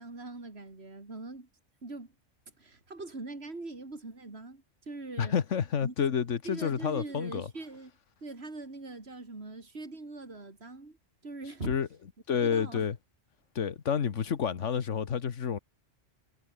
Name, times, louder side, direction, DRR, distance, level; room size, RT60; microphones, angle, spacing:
voice 1, 0.0-1.5 1.8-2.1 2.6-5.4 5.8-5.9 6.4-7.9 8.2-11.0 11.2-11.8 12.4-12.9, right 2 dB, 60° right, 3.8 m, -42 dB
voice 2, 5.2-7.5 11.7-11.9 12.3-13.0 13.5-15.6, left 7 dB, 90° left, 1.6 m, -29 dB
omnidirectional pair, 1.2 m